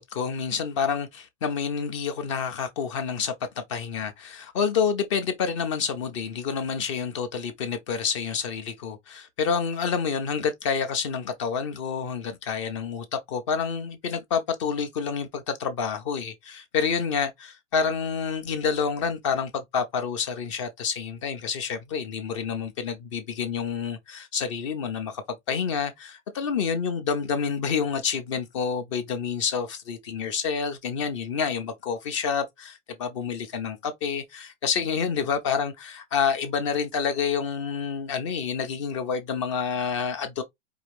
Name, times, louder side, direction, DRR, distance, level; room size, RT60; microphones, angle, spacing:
voice 1, 0.0-25.2 25.5-40.4, left 6 dB, 25° left, 0.5 m, -28 dB
4.8 x 2.6 x 3.1 m
hypercardioid pair, 155°, 36 cm